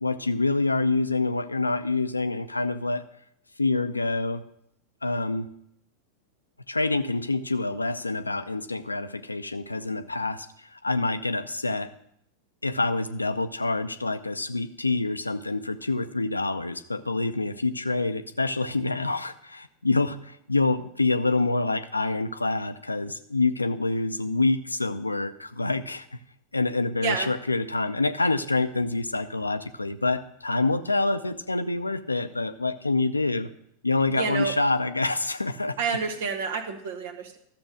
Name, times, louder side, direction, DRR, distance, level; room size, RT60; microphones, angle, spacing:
voice 1, 0.0-3.0 3.6-4.4 5.0-5.5 6.7-10.5 10.7-11.9 12.6-26.1 26.5-33.5 33.8-35.8, left 3 dB, 80° left, 11 dB, 0.6 m, -26 dB
voice 2, 34.2-34.5 35.8-37.4, right 5 dB, 55° right, 7 dB, 1.4 m, -29 dB
13.0 x 7.0 x 6.3 m, 0.73 s
figure-of-eight pair, 90°, 0 cm